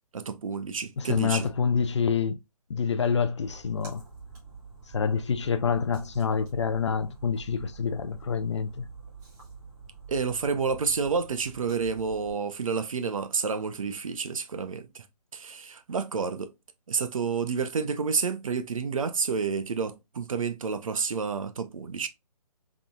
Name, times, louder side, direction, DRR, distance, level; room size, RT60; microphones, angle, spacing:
voice 1, 0.1-1.5 10.1-15.0 15.3-16.5 16.9-22.1, right 5 dB, 55° right, 0.6 m, -29 dB
voice 2, 1.0-2.4 2.7-4.0 4.9-8.9, left 6 dB, 45° left, 0.4 m, -27 dB
Splash splatter, 3.4-12.3, right 5 dB, 25° right, 1.8 m, -47 dB
3.7 x 3.5 x 2.3 m
figure-of-eight pair, 140°, 20 cm